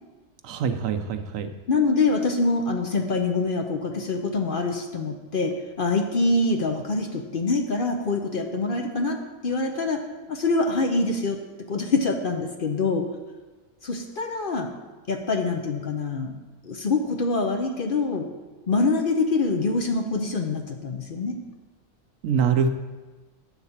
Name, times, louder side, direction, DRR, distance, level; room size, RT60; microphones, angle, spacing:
voice 1, 0.4-1.5 22.2-22.7, right 6 dB, 75° right, 8 dB, 1.0 m, -24 dB
voice 2, 1.7-9.2 9.4-10.0 10.3-11.4 11.7-13.1 13.8-14.7 15.1-16.4 16.6-18.3 18.7-21.4, left 3 dB, 50° left, 4 dB, 0.8 m, -25 dB
9.1 x 4.0 x 7.2 m, 1.2 s
omnidirectional pair, 1.4 m